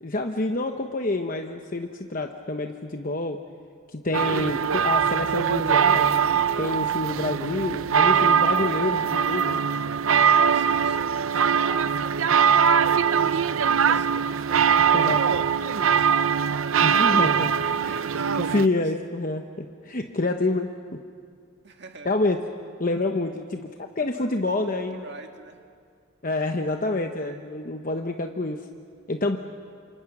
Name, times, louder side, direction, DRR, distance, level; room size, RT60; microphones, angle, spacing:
voice 1, 0.0-3.4 3.9-9.6 14.9-15.2 16.8-17.5 17.8-18.0 18.3-20.7 22.0-22.4 22.8-23.6 24.0-25.0 26.2-28.7 29.1-29.4, left 2 dB, 40° left, 5 dB, 0.9 m, -27 dB
sound 1, 4.1-18.7, right 7 dB, 80° right, 0.6 m, -22 dB
voice 2, 8.6-9.0 10.4-12.6 13.2-15.4 15.8-19.1 21.6-22.1 24.0-25.6 26.3-26.7, right 2 dB, 55° right, 4 dB, 2.1 m, -44 dB
28.5 x 27.0 x 6.1 m, 2.2 s
head